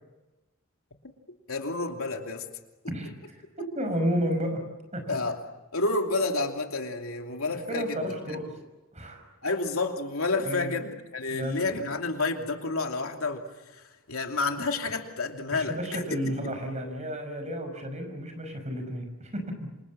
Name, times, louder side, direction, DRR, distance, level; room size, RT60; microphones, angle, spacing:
voice 1, 1.5-2.5 2.8-2.9 5.1-5.4 5.7-8.0 9.4-16.0, left 3 dB, 80° left, 3 dB, 2.9 m, -30 dB
voice 2, 2.9-3.5 3.8-4.6 4.9-5.2 7.7-8.5 8.9-9.3 10.4-10.7 11.3-11.7 15.5-19.5, equal, 35° right, 6 dB, 5.7 m, -32 dB
27.5 x 26.0 x 7.5 m, 1.1 s
head